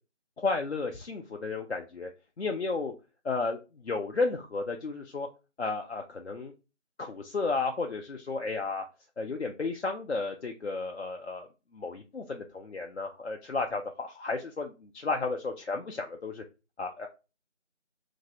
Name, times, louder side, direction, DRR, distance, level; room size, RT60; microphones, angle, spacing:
voice 1, 0.4-2.1 2.4-2.9 3.2-5.3 5.6-6.5 7.0-8.9 9.2-11.5 11.7-16.4 16.8-17.1, left 3 dB, 65° left, 3 dB, 0.5 m, -33 dB
2.6 x 2.0 x 3.9 m, 0.30 s
figure-of-eight pair, 175°, 36 cm